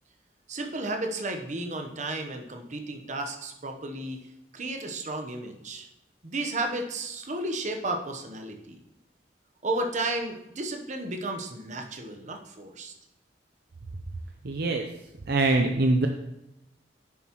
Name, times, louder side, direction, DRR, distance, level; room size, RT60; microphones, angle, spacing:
voice 1, 0.5-4.2 4.5-5.9 6.2-8.8 9.6-12.9, right 2 dB, 45° right, 4 dB, 1.0 m, -33 dB
voice 2, 14.4-14.9 15.3-16.1, right 2 dB, 60° right, 3 dB, 0.6 m, -23 dB
10.0 x 7.3 x 3.1 m, 0.89 s
head